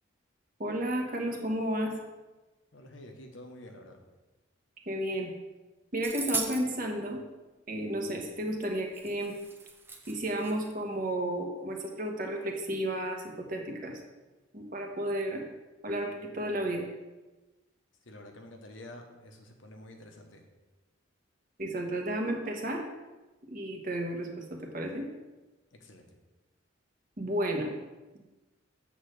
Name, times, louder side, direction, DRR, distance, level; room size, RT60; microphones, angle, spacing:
voice 1, 0.6-1.9 4.9-5.3 5.9-7.2 7.7-9.3 10.1-13.9 14.5-15.4 15.8-16.8 21.6-22.8 23.5-25.1 27.2-27.7, right 1 dB, 45° right, 1 dB, 1.2 m, -32 dB
voice 2, 2.7-4.0 18.1-20.5 25.8-26.1, left 1 dB, 75° left, 3 dB, 1.1 m, -49 dB
sound 1, 6.0-6.6 8.6-8.7 8.9-10.7, right 3 dB, 10° right, 0.7 m, -37 dB
7.9 x 4.0 x 6.5 m, 1.1 s
head